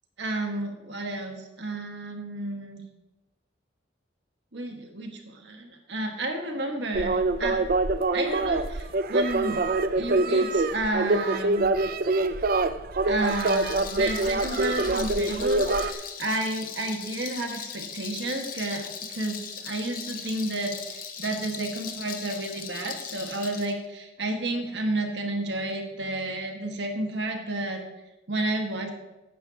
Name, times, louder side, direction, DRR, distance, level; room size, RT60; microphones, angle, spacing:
voice 1, 0.2-2.8 4.5-7.6 8.1-9.6 9.9-11.7 13.0-27.8 28.3-28.9, right 2 dB, 70° right, 3 dB, 1.6 m, -31 dB
sound 1, 6.9-15.9, right 2 dB, 50° right, 0.5 m, -25 dB
Rattle, 13.1-23.7, left 7 dB, 50° left, 0.9 m, -39 dB
14.0 x 9.4 x 2.9 m, 1.0 s
head